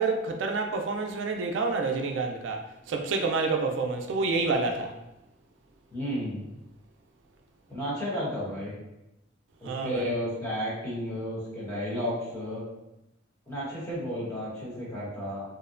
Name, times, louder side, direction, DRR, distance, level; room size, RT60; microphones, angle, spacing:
voice 1, 0.0-2.6 2.9-4.9 9.6-10.1, right 4 dB, 85° right, 3 dB, 0.3 m, -28 dB
voice 2, 5.9-6.4 7.7-8.7 9.6-12.6 13.5-15.4, equal, 15° left, -8 dB, 0.9 m, -32 dB
2.6 x 2.1 x 2.4 m, 0.91 s
head